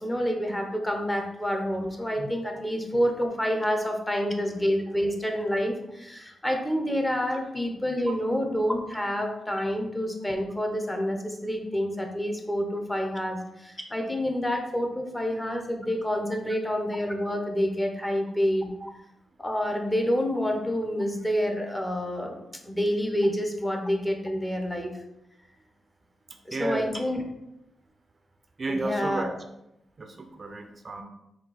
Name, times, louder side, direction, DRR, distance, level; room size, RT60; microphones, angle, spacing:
voice 1, 0.0-18.7 19.4-24.9 26.5-27.2 28.7-29.3, equal, 15° left, 3 dB, 0.7 m, -28 dB
voice 2, 26.3-27.0 28.6-29.3 30.0-31.0, right 2 dB, 40° right, 6 dB, 0.4 m, -32 dB
4.4 x 2.4 x 3.9 m, 0.84 s
cardioid pair, 80°, 0 cm